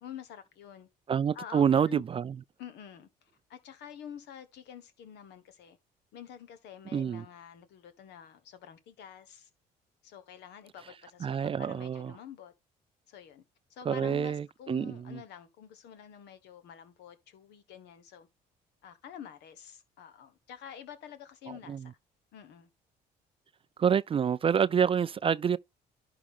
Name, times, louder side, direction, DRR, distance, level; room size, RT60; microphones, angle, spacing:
voice 1, 0.0-0.9 1.3-2.0 2.6-5.8 6.1-9.5 10.0-12.5 13.1-13.4 13.7-18.3 18.8-21.9 22.3-22.7, left 9 dB, 75° left, 1.2 m, -48 dB
voice 2, 1.1-2.4 6.9-7.3 11.2-12.2 13.9-15.2 21.5-21.9 23.8-25.6, right 7 dB, 30° right, 0.3 m, -27 dB
11.0 x 3.8 x 3.6 m
supercardioid pair, 75°, 18 cm